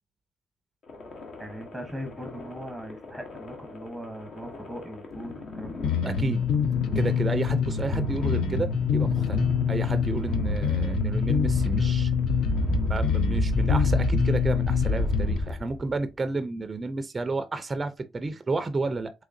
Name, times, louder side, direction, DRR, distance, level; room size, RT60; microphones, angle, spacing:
sound 1, 0.9-16.0, left 1 dB, 60° left, 1.0 m, -31 dB
voice 1, 1.4-5.9 12.1-12.9, equal, 5° left, 0.9 m, -40 dB
Bass guitar, 5.8-15.4, left 7 dB, 80° left, 0.4 m, -26 dB
voice 2, 6.0-6.4 6.9-12.1 12.9-19.1, right 3 dB, 30° right, 0.4 m, -31 dB
3.6 x 3.1 x 2.5 m
cardioid pair, 90°, 0 cm